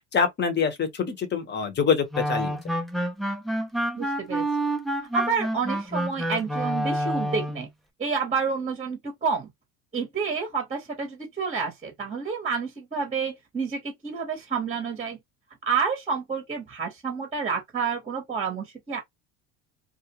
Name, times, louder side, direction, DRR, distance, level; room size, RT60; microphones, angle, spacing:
voice 1, 0.1-2.8, left 6 dB, 30° left, 1.0 m, -25 dB
sound 1, 2.1-7.7, right 1 dB, ahead, 0.3 m, -28 dB
voice 2, 4.0-4.5 5.1-7.7 8.0-9.5 9.9-15.2 15.7-19.0, right 5 dB, 20° right, 0.9 m, -29 dB
2.4 x 2.1 x 2.9 m
supercardioid pair, 90°, 34 cm